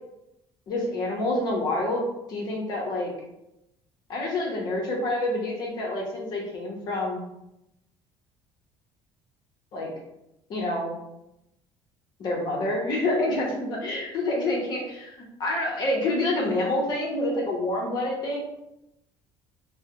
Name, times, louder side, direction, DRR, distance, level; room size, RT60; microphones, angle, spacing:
voice 1, 0.7-3.1 4.1-7.2 9.7-9.9 10.5-10.9 12.2-18.4, left 1 dB, 40° left, -2 dB, 0.7 m, -27 dB
3.3 x 2.0 x 2.8 m, 0.88 s
cardioid pair, 170°, 10 cm